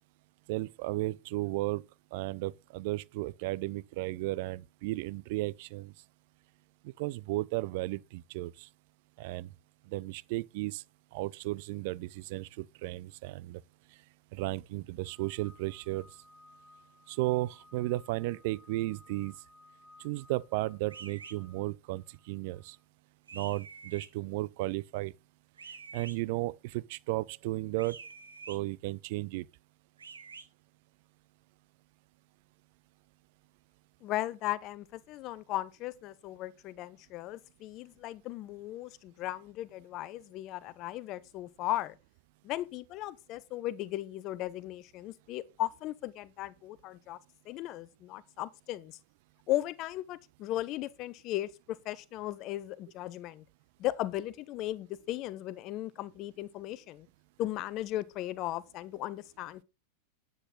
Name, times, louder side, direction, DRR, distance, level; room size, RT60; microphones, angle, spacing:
voice 1, 0.5-1.8 2.1-5.9 6.8-8.7 9.2-9.5 9.9-10.8 11.1-13.6 14.3-16.1 17.1-19.4 20.0-22.8 23.3-25.1 25.9-28.0 28.5-29.5, right 19 dB, 50° right, 0.4 m, -34 dB
sound 1, 15.0-22.8, left 2 dB, 10° right, 1.6 m, -60 dB
sound 2, 20.9-21.4 23.3-24.1 25.6-26.2 27.8-28.6 30.0-30.5, right 5 dB, 70° right, 1.2 m, -47 dB
voice 2, 34.0-42.0 42.4-47.2 47.4-49.0 49.5-53.4 53.8-57.1 57.4-59.6, left 15 dB, 40° left, 0.8 m, -37 dB
10.0 x 8.0 x 4.0 m
figure-of-eight pair, 90°, 0 cm